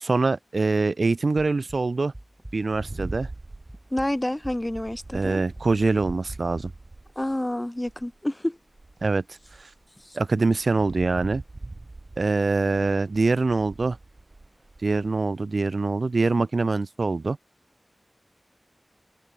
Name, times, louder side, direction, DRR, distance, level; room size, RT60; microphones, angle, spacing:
voice 1, 0.0-2.1 2.5-3.3 5.1-6.7 9.0-9.2 10.1-11.4 12.2-14.0 14.8-17.4, right 3 dB, 70° right, 0.7 m, -24 dB
sound 1, 1.6-3.4 3.7-6.4, right 1 dB, 20° right, 0.9 m, -44 dB
sound 2, 2.7-8.2 8.7-15.2, right 2 dB, 50° right, 5.2 m, -42 dB
voice 2, 3.9-5.4 7.2-8.6 10.1-10.2, left 1 dB, 20° left, 0.5 m, -28 dB
open air
cardioid pair, 45°, 0 cm